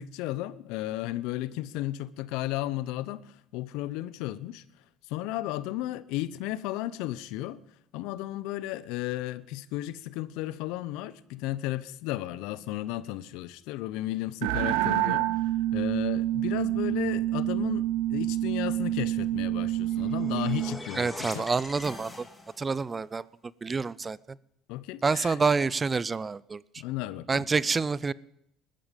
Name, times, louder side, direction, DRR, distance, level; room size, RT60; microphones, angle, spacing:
voice 1, 0.0-4.6 5.1-7.6 7.9-21.5 24.7-25.4 26.8-27.5, left 15 dB, 80° left, 0.7 m, -34 dB
sound 1, 14.4-20.8, right 14 dB, 85° right, 0.7 m, -28 dB
sound 2, 19.8-22.8, left 2 dB, 15° left, 2.8 m, -42 dB
voice 2, 21.0-22.2 22.6-23.2 23.6-24.2 25.0-26.6 27.3-28.1, right 4 dB, 25° right, 0.5 m, -27 dB
20.5 x 13.0 x 5.3 m
supercardioid pair, 85°, 0 cm